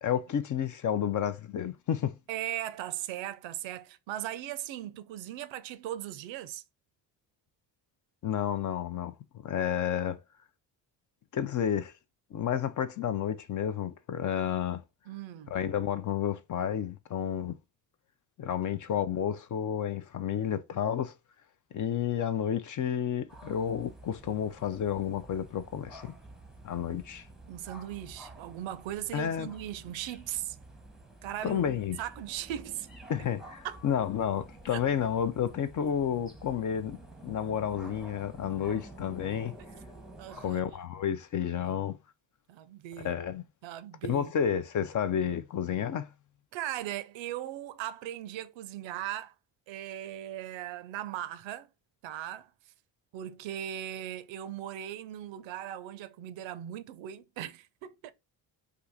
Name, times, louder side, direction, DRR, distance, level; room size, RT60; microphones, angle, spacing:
voice 1, 0.0-2.2 8.2-9.1 9.4-10.2 11.3-11.9 12.3-14.8 15.5-17.6 18.4-21.1 21.7-26.1 26.6-27.2 29.1-29.5 31.4-32.0 33.1-39.6 40.4-42.0 43.0-43.4 44.1-46.1, left 9 dB, 40° left, 0.5 m, -31 dB
voice 2, 2.3-6.6 15.1-15.5 18.6-19.0 27.5-30.6 31.2-32.9 33.6-33.8 34.7-34.8 40.2-40.6 42.5-43.2 43.6-44.3 46.5-49.3 49.7-51.7 52.0-52.5 53.1-58.1, right 12 dB, 70° right, 0.6 m, -38 dB
sound 1, 23.3-40.6, right 2 dB, ahead, 0.7 m, -50 dB
2.8 x 2.4 x 3.5 m
supercardioid pair, 60°, 48 cm